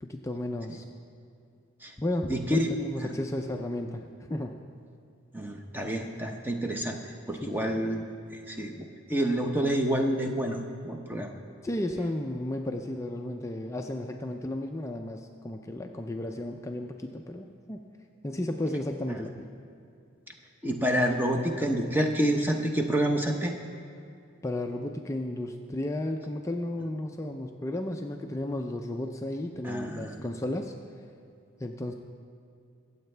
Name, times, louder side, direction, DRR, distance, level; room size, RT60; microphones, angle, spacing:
voice 1, 0.0-0.8 2.0-4.5 7.4-7.5 11.6-17.8 18.2-19.5 24.4-30.7 31.6-31.9, left 1 dB, 15° left, 3 dB, 0.4 m, -33 dB
voice 2, 2.3-2.7 3.0-3.1 5.3-7.0 7.3-8.0 8.3-11.3 19.1-19.2 20.6-23.5 29.6-30.2, equal, 10° right, 3 dB, 0.8 m, -28 dB
24.0 x 8.0 x 3.3 m, 2.5 s
head